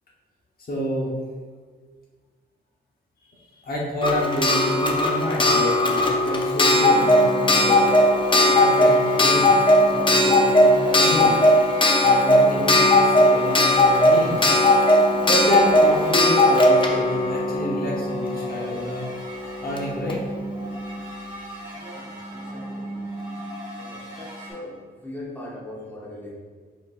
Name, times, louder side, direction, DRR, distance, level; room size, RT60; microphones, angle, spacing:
voice 1, 0.7-1.1 3.6-7.9 8.5-9.5 9.8-11.4 12.0-14.4 15.3-19.1 19.6-20.2, equal, 55° left, -3 dB, 0.9 m, -28 dB
Clock, 4.0-18.6 19.8-19.9 20.1-20.2, left 1 dB, 25° left, 0.5 m, -18 dB
sound 1, 6.8-24.5, right 1 dB, 25° right, 1.4 m, -35 dB
voice 2, 22.3-22.9 23.8-24.7 25.0-26.3, left 1 dB, 10° left, -4 dB, 0.9 m, -39 dB
4.5 x 4.0 x 2.4 m, 1.5 s
wide cardioid pair, 115°, 19 cm